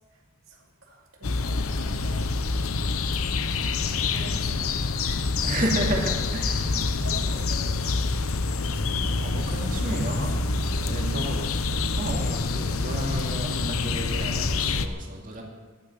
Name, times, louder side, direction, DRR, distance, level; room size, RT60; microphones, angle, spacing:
voice 1, 0.5-2.4 4.1-4.7 5.0-5.2 6.7-7.8 8.7-9.1 11.0-11.3 13.4-14.0, right 1 dB, 75° right, 0 dB, 2.3 m, -42 dB
sound 1, 1.2-14.9, left 3 dB, 80° left, 0.8 m, -27 dB
voice 2, 3.9-4.2 5.4-7.4 8.1-8.4 8.7-11.5 12.0-15.4, right 1 dB, 40° right, -1 dB, 2.5 m, -32 dB
12.0 x 10.0 x 9.5 m, 1.4 s
head